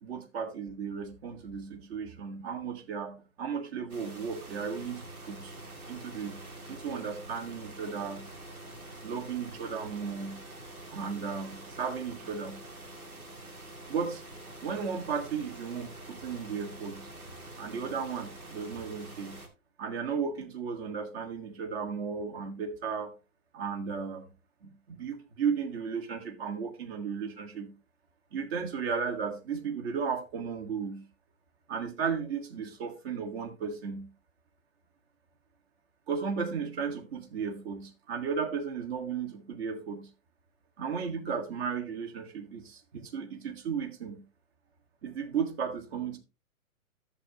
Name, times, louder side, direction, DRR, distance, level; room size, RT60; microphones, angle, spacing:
voice 1, 0.0-5.5 5.9-6.4 6.7-8.2 9.0-10.4 10.9-12.6 13.9-14.2 14.6-17.1 17.6-19.4 19.8-23.1 23.5-24.3 24.6-27.7 28.3-31.0 31.7-34.1 36.1-40.1 40.8-44.2 45.0-46.2, right 6 dB, 45° right, 1.9 m, -35 dB
sound 1, 3.9-19.5, right 1 dB, 90° right, 2.2 m, -46 dB
11.0 x 7.2 x 2.9 m
hypercardioid pair, 130°, 42 cm